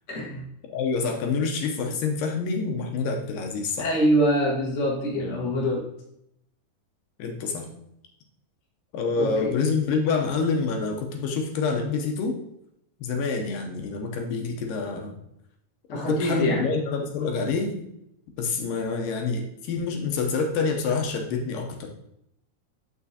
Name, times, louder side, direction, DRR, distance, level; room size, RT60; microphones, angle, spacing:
voice 1, 0.1-0.4 3.8-5.9 9.2-9.5 15.9-16.7, equal, 60° left, -4 dB, 0.7 m, -24 dB
voice 2, 0.7-3.9 5.1-5.4 7.2-7.7 8.9-12.4 13.0-15.2 15.9-17.9 18.4-21.9, left 4 dB, 75° left, 3 dB, 2.2 m, -27 dB
6.9 x 5.9 x 2.7 m, 0.78 s
omnidirectional pair, 4.3 m